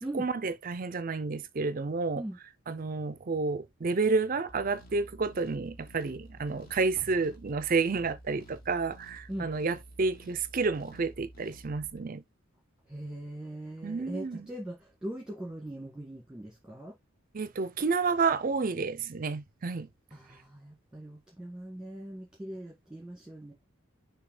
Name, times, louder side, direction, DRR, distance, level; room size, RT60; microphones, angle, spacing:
voice 1, 0.1-2.2 2.7-12.2 13.8-14.4 17.3-19.9, right 4 dB, 40° right, 0.5 m, -30 dB
sound 1, 4.5-12.0, right 1 dB, 45° left, 1.9 m, -52 dB
voice 2, 12.9-17.0 20.1-23.5, right 1 dB, 5° right, 1.7 m, -41 dB
6.7 x 2.8 x 5.2 m
head